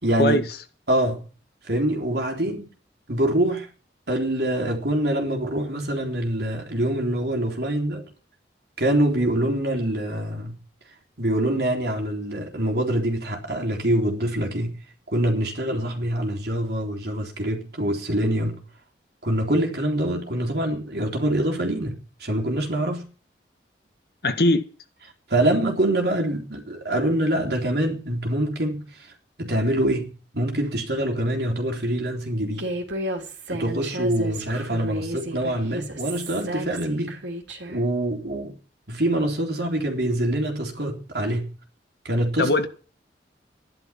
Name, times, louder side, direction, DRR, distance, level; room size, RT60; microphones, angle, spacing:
voice 1, 0.0-0.5 0.9-1.3 1.6-2.7 3.1-3.7 4.1-8.1 8.8-10.6 11.2-14.8 15.1-18.6 19.2-23.1 25.3-28.9 29.4-32.7 33.5-37.2 37.7-38.5 38.9-41.5 42.0-42.5, right 1 dB, 60° right, 3.8 m, -25 dB
voice 2, 24.2-24.7 42.4-42.7, left 1 dB, 55° left, 1.6 m, -20 dB
Human voice, 32.6-37.8, right 1 dB, 80° right, 3.2 m, -33 dB
13.0 x 11.5 x 5.9 m
head